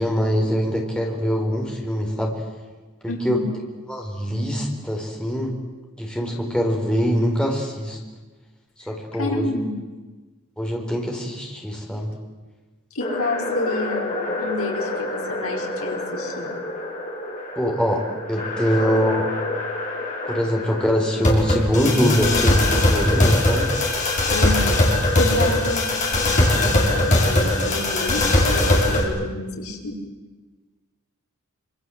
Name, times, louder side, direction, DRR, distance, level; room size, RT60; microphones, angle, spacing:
voice 1, 0.0-2.4 3.0-3.4 3.9-5.5 6.0-8.0 8.9-9.5 10.6-12.2 17.6-19.2 20.3-23.7, equal, 5° left, 0 dB, 4.6 m, -23 dB
voice 2, 3.1-3.5 9.1-9.7 12.9-16.5 24.3-24.9 25.1-30.0, left 2 dB, 70° left, 2 dB, 4.7 m, -29 dB
sound 1, 13.0-29.0, left 1 dB, 35° left, 5.9 m, -22 dB
26.5 x 26.0 x 8.0 m, 1.3 s
head